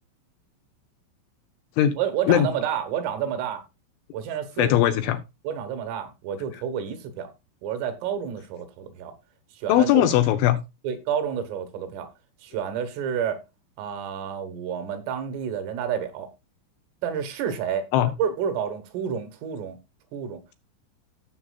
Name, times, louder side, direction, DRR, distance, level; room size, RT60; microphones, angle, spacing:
voice 1, 2.0-3.6 4.1-4.8 5.5-7.3 7.6-9.2 9.5-10.1 10.8-12.1 12.4-13.4 13.8-16.3 17.0-17.9 18.2-19.8 20.1-20.4, right 8 dB, 80° right, 3.8 m, -29 dB
voice 2, 4.6-5.2 9.7-10.6 17.9-18.1, left 12 dB, 80° left, 2.9 m, -19 dB
15.0 x 7.0 x 2.3 m
omnidirectional pair, 5.9 m